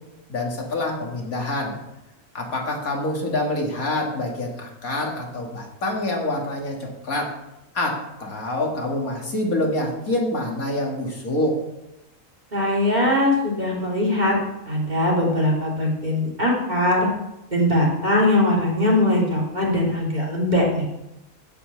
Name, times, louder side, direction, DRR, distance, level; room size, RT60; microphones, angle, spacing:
voice 1, 0.3-1.8 2.3-7.3 7.7-11.6, left 1 dB, 80° left, 0 dB, 2.7 m, -26 dB
voice 2, 12.5-14.4 14.7-17.1 17.5-20.8, left 1 dB, 30° right, -3 dB, 3.0 m, -21 dB
15.0 x 5.7 x 6.8 m, 0.93 s
omnidirectional pair, 1.5 m